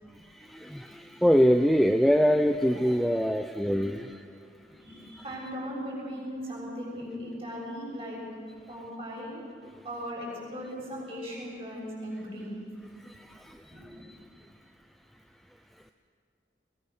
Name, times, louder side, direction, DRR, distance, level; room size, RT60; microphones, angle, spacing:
voice 1, 0.4-4.2, equal, ahead, 6 dB, 0.5 m, -23 dB
voice 2, 4.6-8.2 8.7-9.4 9.8-12.5 13.7-14.1, equal, 30° right, -3 dB, 6.9 m, -38 dB
21.5 x 19.5 x 6.6 m, 2.2 s
head